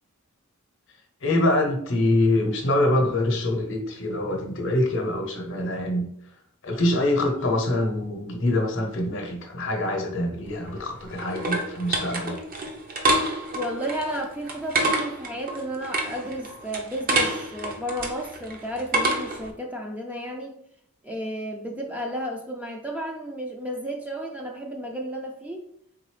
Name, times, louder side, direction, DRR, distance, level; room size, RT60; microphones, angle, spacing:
voice 1, 1.2-6.1 6.6-12.4, left 1 dB, 60° left, 3 dB, 0.8 m, -24 dB
sound 1, 10.5-19.5, right 2 dB, 40° right, 0.7 m, -28 dB
voice 2, 13.5-20.5 21.0-25.7, equal, 5° right, 1 dB, 0.4 m, -33 dB
3.8 x 3.8 x 3.2 m, 0.69 s
head